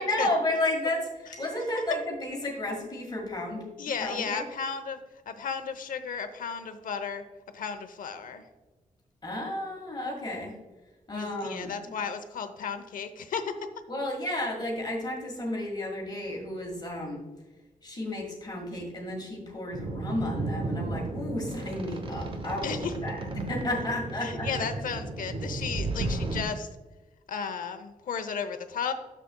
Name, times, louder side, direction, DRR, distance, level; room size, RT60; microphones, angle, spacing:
voice 1, 0.0-3.7 4.0-4.4 9.2-10.5 11.1-11.7 13.9-17.2 17.8-24.7, left 1 dB, 30° left, -1 dB, 1.8 m, -32 dB
voice 2, 3.8-5.0 5.3-7.2 7.5-8.4 11.1-13.6 22.6-22.9 24.2-26.7 27.3-28.9, left 6 dB, 80° left, 9 dB, 0.8 m, -34 dB
sound 1, 19.7-26.4, right 2 dB, 40° right, 0.9 m, -33 dB
10.5 x 7.4 x 2.3 m, 1.2 s
wide cardioid pair, 140°, 14 cm